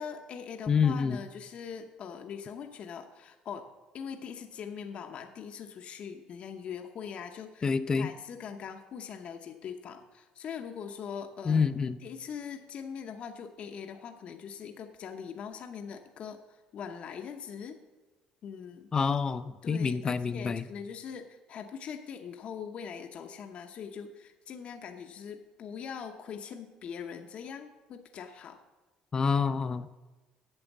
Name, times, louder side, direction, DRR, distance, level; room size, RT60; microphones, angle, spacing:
voice 1, 0.0-3.7 3.9-11.7 12.0-17.8 18.4-18.9 19.6-28.6, left 7 dB, 50° left, 5 dB, 0.8 m, -42 dB
voice 2, 0.7-1.2 7.6-8.1 11.5-12.0 18.9-20.6 29.1-30.0, left 5 dB, 30° left, 12 dB, 0.5 m, -27 dB
8.8 x 6.9 x 7.2 m, 1.2 s
cardioid pair, 115°, 3 cm